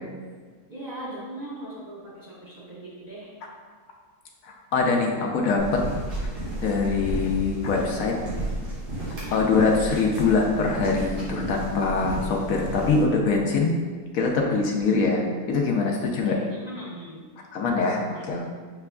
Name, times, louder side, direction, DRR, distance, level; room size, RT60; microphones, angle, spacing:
voice 1, 0.7-3.3 9.1-9.5 16.2-17.3 18.1-18.3, right 1 dB, 30° right, -9 dB, 1.0 m, -39 dB
voice 2, 4.4-5.8 6.6-8.1 9.3-13.8 14.1-16.4 17.5-18.5, left 4 dB, 65° left, 0 dB, 1.0 m, -23 dB
sound 1, 5.6-13.0, right 1 dB, 85° right, 2.2 m, -32 dB
6.8 x 3.4 x 2.3 m, 1.5 s
omnidirectional pair, 1.7 m